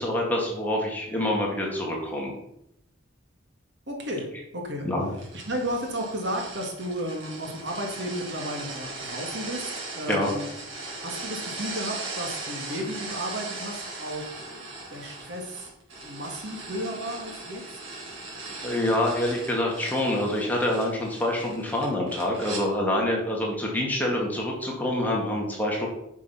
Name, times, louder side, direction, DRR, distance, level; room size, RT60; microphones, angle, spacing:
voice 1, 0.0-2.3 4.9-5.1 10.1-10.3 18.6-25.9, left 1 dB, 10° left, -2 dB, 2.2 m, -26 dB
voice 2, 3.9-4.3 4.5-4.9 5.3-10.4 11.0-15.7 15.9-17.6, equal, 60° right, 2 dB, 2.3 m, -33 dB
sound 1, 5.1-22.6, right 3 dB, 75° right, 4.1 m, -38 dB
10.0 x 6.2 x 5.9 m, 0.79 s
head